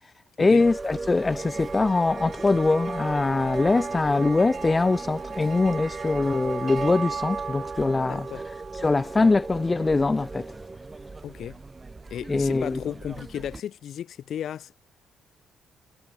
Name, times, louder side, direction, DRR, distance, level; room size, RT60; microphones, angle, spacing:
voice 1, 0.4-10.6 12.3-12.8, left 3 dB, 25° left, 0.6 m, -23 dB
sound 1, 0.6-13.6, right 3 dB, 25° right, 1.8 m, -37 dB
sound 2, 1.1-9.7, right 6 dB, 50° right, 1.7 m, -38 dB
voice 2, 8.1-8.4 11.2-11.6 12.1-14.8, left 10 dB, 65° left, 2.3 m, -34 dB
supercardioid pair, 75°, 0 cm